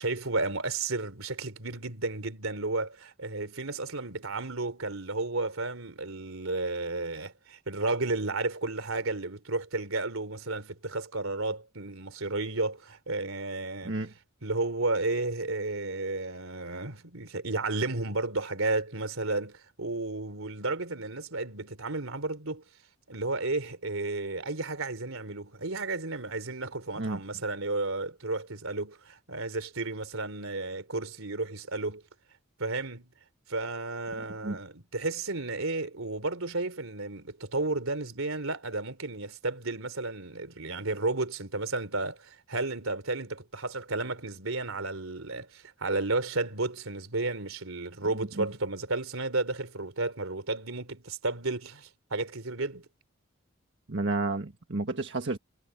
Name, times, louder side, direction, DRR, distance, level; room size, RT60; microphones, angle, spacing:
voice 1, 0.0-13.9 14.4-22.6 23.1-32.0 32.6-33.1 33.5-52.8, right 2 dB, 90° right, 3.3 m, -32 dB
voice 2, 13.8-14.1 27.0-27.2 34.4-34.6 48.4-48.5 53.9-55.4, right 2 dB, 60° right, 1.6 m, -31 dB
head